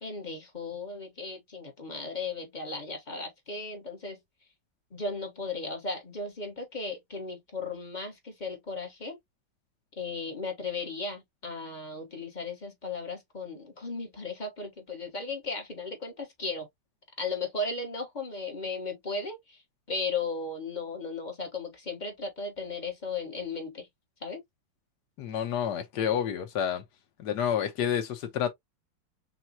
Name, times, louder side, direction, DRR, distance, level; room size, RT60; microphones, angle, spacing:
voice 1, 0.0-4.2 4.9-9.2 10.0-16.7 17.2-19.6 19.9-23.9 24.2-24.4, left 3 dB, 30° left, 1.0 m, -36 dB
voice 2, 25.2-26.8 27.2-28.5, left 9 dB, 60° left, 1.6 m, -29 dB
6.1 x 2.3 x 2.8 m
omnidirectional pair, 2.1 m